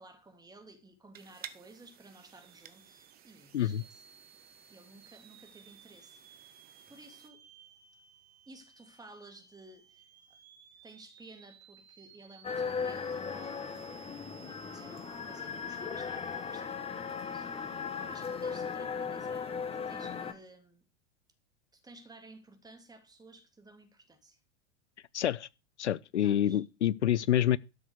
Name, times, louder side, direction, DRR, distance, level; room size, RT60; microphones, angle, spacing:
voice 1, 0.0-4.0 4.7-7.4 8.5-10.4 10.8-14.0 14.5-20.9 21.7-24.4 26.2-26.6, right 2 dB, 10° right, 2.9 m, -55 dB
sound 1, 1.1-7.3, right 10 dB, 25° right, 1.1 m, -54 dB
sound 2, 2.0-18.7, right 8 dB, 65° right, 2.2 m, -59 dB
sound 3, 12.4-20.3, left 6 dB, 15° left, 1.4 m, -37 dB
voice 2, 25.1-25.5 25.8-27.6, left 11 dB, 75° left, 0.5 m, -27 dB
12.5 x 6.6 x 6.5 m
figure-of-eight pair, 90°, 34 cm